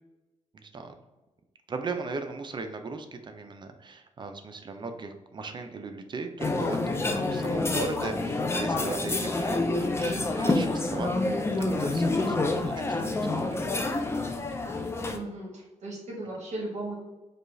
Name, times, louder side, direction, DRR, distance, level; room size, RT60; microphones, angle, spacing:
voice 1, 0.5-0.9 1.7-11.2 11.6-13.6, right 3 dB, 35° right, 6 dB, 0.5 m, -38 dB
sound 1, 6.4-15.2, left 2 dB, 20° left, 0.4 m, -28 dB
voice 2, 15.1-16.9, right 2 dB, 65° right, -3 dB, 1.2 m, -36 dB
4.9 x 2.3 x 3.1 m, 1.1 s
cardioid pair, 115°, 13 cm